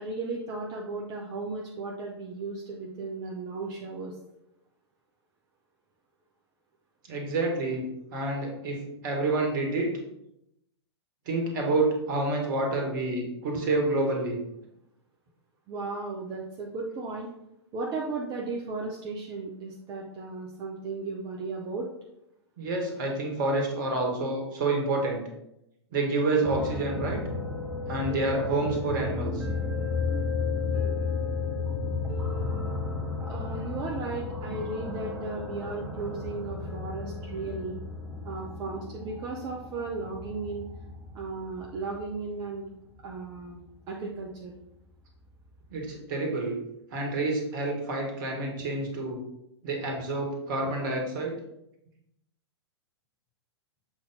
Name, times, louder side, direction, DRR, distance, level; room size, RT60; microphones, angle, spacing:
voice 1, 0.0-4.2 15.7-17.3 17.7-21.9 33.3-37.8 38.2-40.7 41.1-42.7 43.0-43.6 43.9-44.5, right 3 dB, 30° right, -1 dB, 0.8 m, -35 dB
voice 2, 7.1-7.8 8.1-9.9 11.3-14.4 22.6-25.2 25.9-27.2 27.9-29.5 45.7-46.5 46.9-49.2 49.6-51.3, right 2 dB, 45° right, 1 dB, 1.8 m, -28 dB
sound 1, 26.4-43.7 45.3-45.4 45.8-45.9, left 3 dB, 10° right, 1.4 m, -33 dB
7.2 x 4.2 x 3.8 m, 0.82 s
figure-of-eight pair, 105°, 14 cm